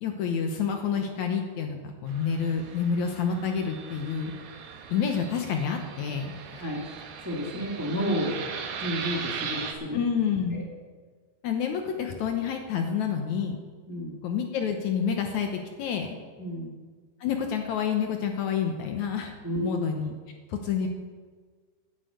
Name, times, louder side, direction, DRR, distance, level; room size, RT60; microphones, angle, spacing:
voice 1, 0.0-4.3 4.9-6.3 9.9-10.6 11.4-13.6 14.2-16.1 17.2-19.3 19.6-20.1 20.5-20.9, left 7 dB, 70° left, 4 dB, 2.1 m, -28 dB
Fixed-wing aircraft airplane, 2.1-9.7, right 6 dB, 80° right, 2.8 m, -39 dB
voice 2, 7.2-8.3 8.8-10.0 10.5-10.6 13.9-14.1 16.4-16.7 19.4-19.8, equal, 10° right, -2 dB, 1.2 m, -31 dB
10.0 x 9.8 x 8.0 m, 1.5 s
omnidirectional pair, 3.9 m